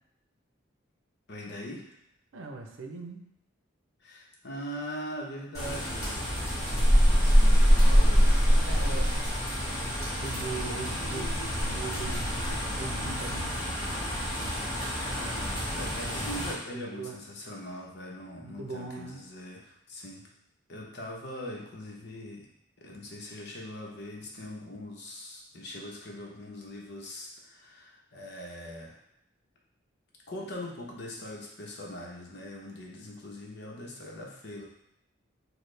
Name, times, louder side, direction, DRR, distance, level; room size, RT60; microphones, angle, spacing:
voice 1, 1.3-1.9 4.0-6.2 7.1-8.5 9.0-9.3 10.7-10.8 15.1-20.2 20.7-22.5 22.8-29.0 30.3-34.6, left 1 dB, 60° left, -2 dB, 0.9 m, -41 dB
voice 2, 2.3-3.3 8.5-9.1 10.2-12.3 12.7-13.6 16.7-17.2 18.4-19.2, right 3 dB, 80° right, 3 dB, 0.6 m, -40 dB
sound 1, 5.5-16.5, equal, 15° left, 1.7 m, -25 dB
6.4 x 2.3 x 3.3 m, 0.78 s
head